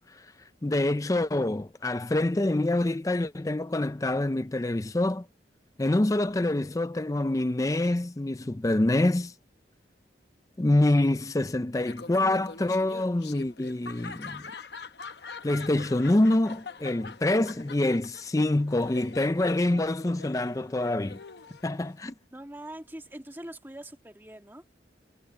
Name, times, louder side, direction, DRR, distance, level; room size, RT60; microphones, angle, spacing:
voice 1, 0.6-5.2 5.8-9.3 10.6-14.4 15.4-21.2 21.6-22.1, left 1 dB, 20° left, 0.4 m, -26 dB
Laughter, 11.7-22.1, left 4 dB, 65° left, 0.9 m, -44 dB
voice 2, 22.3-24.6, right 1 dB, 10° right, 1.7 m, -43 dB
head